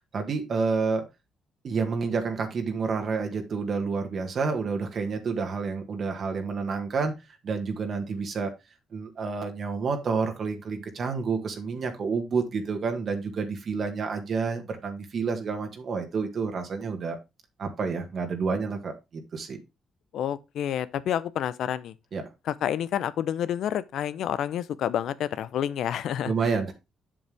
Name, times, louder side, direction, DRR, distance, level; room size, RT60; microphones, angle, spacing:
voice 1, 0.1-1.1 1.6-7.1 7.4-8.5 8.9-17.2 17.6-19.6 22.1-22.2 26.3-26.7, right 4 dB, 50° right, 1.7 m, -29 dB
voice 2, 20.1-21.9 22.5-26.7, left 10 dB, 75° left, 0.7 m, -29 dB
7.5 x 6.9 x 3.4 m
cardioid pair, 90°, 0 cm